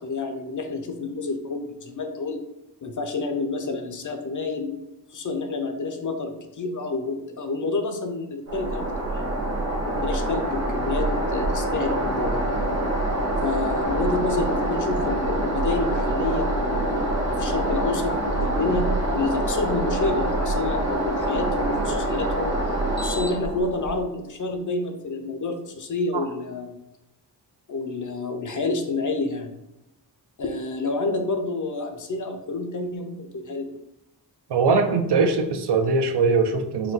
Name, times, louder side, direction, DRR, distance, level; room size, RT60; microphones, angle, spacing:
voice 1, 0.0-2.4 2.8-4.8 5.1-9.3 9.9-12.4 13.4-18.9 19.1-22.5 23.0-26.7 27.7-29.5 30.4-33.8, left 3 dB, 45° left, 6 dB, 0.5 m, -29 dB
sound 1, 8.5-24.0, right 1 dB, 40° right, 1.0 m, -25 dB
voice 2, 34.5-36.9, right 4 dB, 70° right, 7 dB, 0.5 m, -21 dB
4.3 x 2.2 x 3.9 m, 0.89 s
wide cardioid pair, 125°, 42 cm